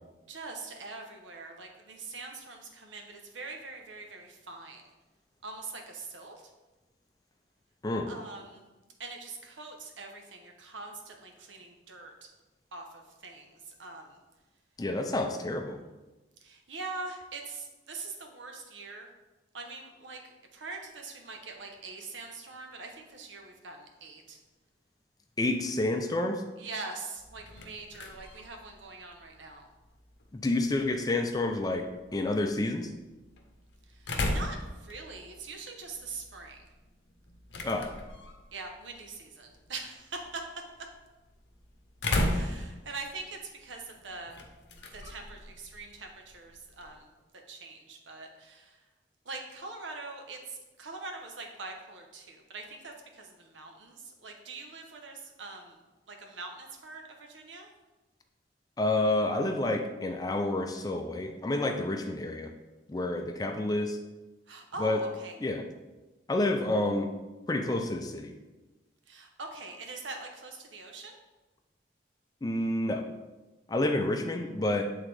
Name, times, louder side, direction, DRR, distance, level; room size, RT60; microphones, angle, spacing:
voice 1, 0.3-4.8 5.4-6.4 8.1-8.6 9.0-12.3 12.7-14.2 16.4-19.1 19.5-20.2 20.5-24.4 26.6-29.7 33.9-36.6 38.5-40.4 42.3-44.3 44.9-47.1 47.5-48.8 49.2-55.8 56.1-57.7 64.5-65.3 69.1-71.2, right 3 dB, 90° right, 3 dB, 0.9 m, -43 dB
voice 2, 14.8-15.8 25.4-26.4 30.3-32.9 37.6-37.9 58.8-62.5 62.9-64.0 64.8-65.0 65.4-65.6 66.3-67.1 67.5-68.3 72.4-73.1 73.7-74.8, left 2 dB, 20° left, 5 dB, 0.4 m, -29 dB
sound 1, 27.2-47.0, left 1 dB, 70° left, 0.7 m, -39 dB
8.0 x 3.7 x 3.3 m, 1.1 s
head